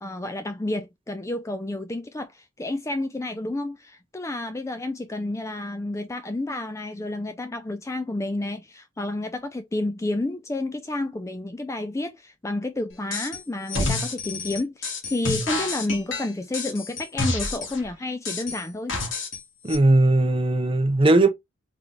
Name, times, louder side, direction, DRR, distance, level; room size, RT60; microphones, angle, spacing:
voice 1, 0.0-19.0, left 2 dB, 15° left, 0.4 m, -30 dB
sound 1, 13.1-13.4 13.7-17.8 18.2-19.4 19.7-19.8, left 3 dB, 65° left, 1.8 m, -29 dB
voice 2, 19.6-21.3, right 2 dB, 25° right, 0.7 m, -18 dB
3.9 x 3.6 x 3.3 m
head